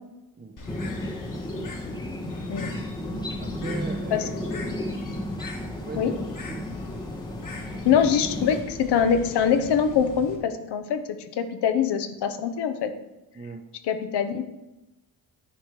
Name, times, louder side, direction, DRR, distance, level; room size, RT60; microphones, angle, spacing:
Bird, 0.6-10.4, left 3 dB, 50° left, 1.6 m, -40 dB
sound 1, 0.7-8.6, left 1 dB, 10° left, 0.6 m, -33 dB
voice 1, 3.1-4.3 5.8-6.1 6.5-6.7 13.3-13.6, right 3 dB, 25° right, 8 dB, 0.7 m, -38 dB
voice 2, 4.1-4.6 6.0-6.1 7.8-12.9 13.8-14.4, left 7 dB, 85° left, 9 dB, 0.9 m, -24 dB
10.0 x 4.5 x 4.7 m, 0.98 s
cardioid pair, 110°, 39 cm